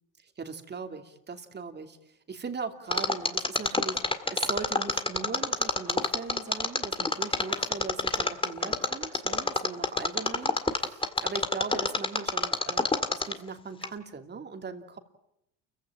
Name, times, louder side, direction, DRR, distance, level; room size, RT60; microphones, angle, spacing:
voice 1, 0.2-15.0, right 5 dB, 30° right, 6 dB, 2.9 m, -39 dB
Mechanisms, 2.9-13.5 13.8-13.9, left 3 dB, 15° left, 2.0 m, -27 dB
29.0 x 16.0 x 9.0 m, 0.83 s
supercardioid pair, 95°, 35 cm